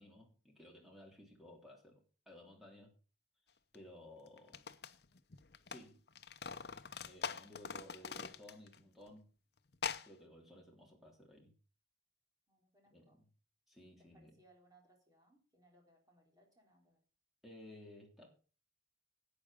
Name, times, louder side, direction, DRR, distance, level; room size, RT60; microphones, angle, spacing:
voice 1, 0.0-2.9 3.7-4.7 5.7-6.0 7.0-9.3 10.0-11.6 12.9-13.3 13.7-14.4 17.4-18.3, left 1 dB, ahead, 0 dB, 3.4 m, -57 dB
sound 1, 3.7-3.8 4.4-5.8 6.1-8.8 9.1-9.2 9.7-10.1, left 6 dB, 60° left, 0.8 m, -43 dB
voice 2, 12.5-13.2 14.0-17.0, right 1 dB, 20° right, 1 dB, 3.9 m, -69 dB
11.5 x 8.8 x 5.1 m, 0.35 s
head